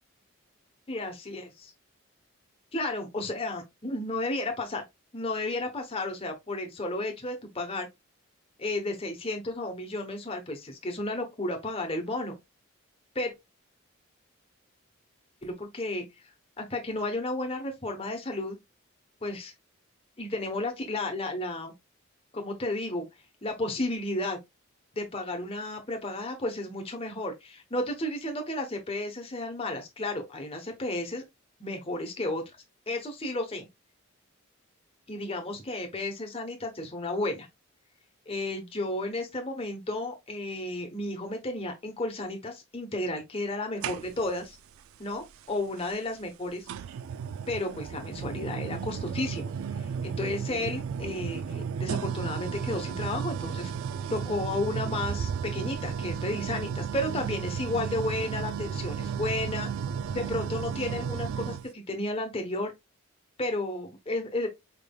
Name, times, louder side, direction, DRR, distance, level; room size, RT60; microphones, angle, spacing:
voice 1, 0.9-1.7 2.7-4.8 5.1-7.9 8.6-12.4 13.1-13.3 15.4-16.0 16.6-18.6 19.2-19.5 20.2-21.7 22.3-23.0 23.4-24.4 24.9-31.2 31.6-32.4 32.9-33.7 35.1-37.5 38.3-44.6 45.0-46.7 47.5-49.5 50.0-53.7 54.1-59.7 60.1-62.7 63.4-64.5, left 2 dB, 25° left, 0.8 m, -32 dB
sound 1, 43.8-44.4 45.8-45.9 46.7-61.7, right 6 dB, 75° right, 0.3 m, -34 dB
4.7 x 3.5 x 2.2 m
head